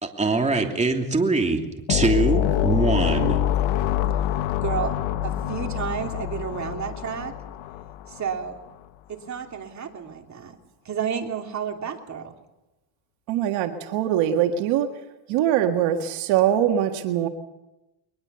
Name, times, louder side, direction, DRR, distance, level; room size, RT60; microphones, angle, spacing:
voice 1, 0.0-1.6 1.9-3.4, right 3 dB, 15° right, 3 dB, 2.9 m, -23 dB
sound 1, 1.9-8.4, left 12 dB, 75° left, 1.4 m, -25 dB
voice 2, 4.6-4.9 5.2-7.3 8.1-8.6 9.1-10.6 10.8-12.3, right 7 dB, 35° right, 3 dB, 3.1 m, -31 dB
voice 3, 13.3-14.9 15.3-17.3, right 10 dB, 75° right, 5 dB, 1.9 m, -22 dB
22.5 x 20.5 x 6.9 m, 0.99 s
cardioid pair, 105°, 47 cm